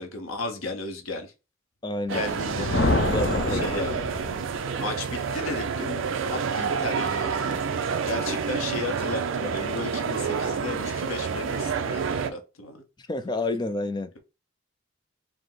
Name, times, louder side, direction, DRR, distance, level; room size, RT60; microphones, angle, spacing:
voice 1, 0.0-1.3 2.1-2.8 3.5-3.9 4.8-7.6 8.1-12.8, left 3 dB, 90° left, 0.9 m, -34 dB
voice 2, 1.8-2.2 2.9-3.8 13.0-14.1, left 2 dB, 20° left, 0.3 m, -29 dB
Thunder, 2.1-4.8, left 2 dB, 55° left, 0.7 m, -27 dB
sound 1, 2.1-12.3, right 6 dB, 75° right, 0.5 m, -29 dB
4.8 x 2.1 x 3.9 m
head